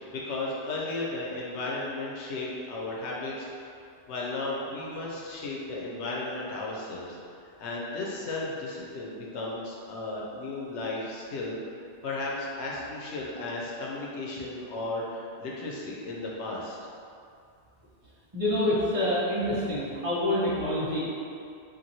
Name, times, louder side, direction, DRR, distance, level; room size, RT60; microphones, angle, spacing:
voice 1, 0.1-3.5 4.1-7.2 7.6-11.6 12.0-16.8, left 2 dB, 85° left, -4 dB, 0.9 m, -34 dB
voice 2, 18.3-21.0, left 1 dB, 35° right, -12 dB, 0.8 m, -27 dB
2.9 x 2.5 x 2.6 m, 2.4 s
omnidirectional pair, 1.1 m